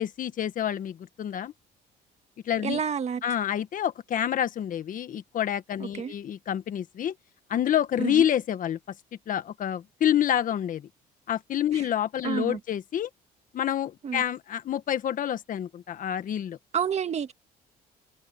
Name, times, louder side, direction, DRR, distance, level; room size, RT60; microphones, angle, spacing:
voice 1, 0.0-1.5 2.4-2.8 3.2-7.1 7.5-8.8 9.3-10.9 11.3-13.1 13.5-16.6, left 10 dB, 55° left, 1.6 m, -28 dB
voice 2, 2.6-3.2 6.0-6.1 8.0-8.3 12.2-12.6 14.0-14.2 16.7-17.3, right 7 dB, 40° right, 1.8 m, -29 dB
cardioid pair, 110°, 17 cm